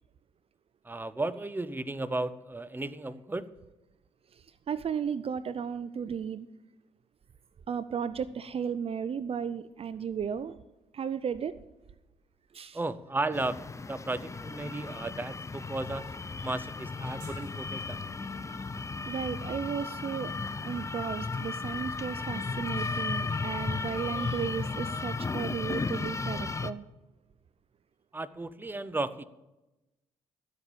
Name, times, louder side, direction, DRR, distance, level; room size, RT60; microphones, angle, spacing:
voice 1, 0.8-3.5 12.7-13.6 13.9-16.1 16.4-18.1 28.1-29.2, right 2 dB, 15° right, 16 dB, 0.8 m, -34 dB
voice 2, 4.3-6.5 7.7-10.6 10.9-11.6 12.5-12.8 19.1-20.3 20.6-26.8, right 7 dB, 45° right, 15 dB, 0.6 m, -34 dB
sound 1, 8.4-21.8, right 3 dB, 70° right, 5.5 m, -66 dB
sound 2, 13.3-26.7, left 4 dB, 20° left, 0.7 m, -35 dB
12.5 x 8.1 x 7.4 m, 1.0 s
hypercardioid pair, 45°, 14 cm